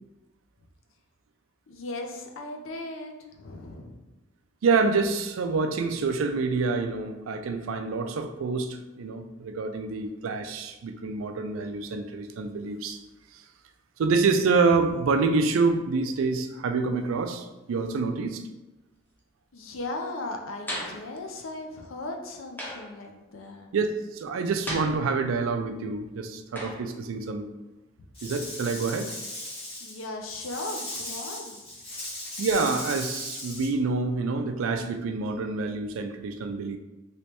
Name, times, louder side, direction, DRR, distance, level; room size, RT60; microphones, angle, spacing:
voice 1, 1.7-4.0 19.5-23.7 29.8-31.6, left 2 dB, 80° left, 3 dB, 0.6 m, -37 dB
voice 2, 4.6-13.0 13.3-13.4 14.0-18.4 23.7-27.5 28.2-29.1 32.4-36.8, right 4 dB, 85° right, 7 dB, 0.4 m, -27 dB
sound 1, 20.7-21.1 22.6-23.0 24.7-25.4 26.5-26.9, equal, 10° left, 0.5 m, -35 dB
Rattle / Rattle (instrument), 28.1-33.7, left 1 dB, 30° left, 1.2 m, -37 dB
3.3 x 3.0 x 2.9 m, 1.0 s
head